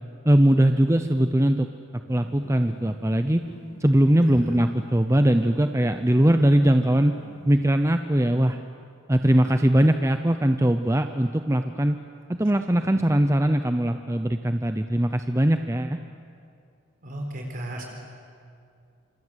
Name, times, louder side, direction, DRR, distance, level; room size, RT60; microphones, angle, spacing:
voice 1, 0.2-1.7 2.1-3.4 3.8-7.2 7.4-8.6 9.1-12.0 12.3-16.0, right 1 dB, 15° right, 8 dB, 0.7 m, -21 dB
sound 1, 2.1-7.7, left 1 dB, 55° left, 1.7 m, -47 dB
voice 2, 17.0-17.9, right 1 dB, 45° right, 1 dB, 4.3 m, -35 dB
26.5 x 26.0 x 8.1 m, 2.3 s
head